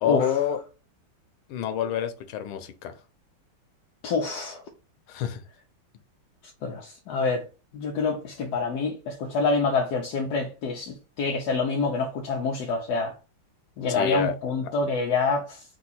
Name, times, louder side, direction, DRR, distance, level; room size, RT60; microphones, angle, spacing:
voice 1, 0.0-0.6 1.5-3.0 5.1-5.4 13.9-14.4, left 9 dB, 90° left, 1.6 m, -27 dB
voice 2, 4.0-4.6 6.6-7.5 7.7-13.1 13.8-15.6, left 4 dB, 65° left, 1.1 m, -27 dB
4.6 x 2.3 x 4.1 m
omnidirectional pair, 2.2 m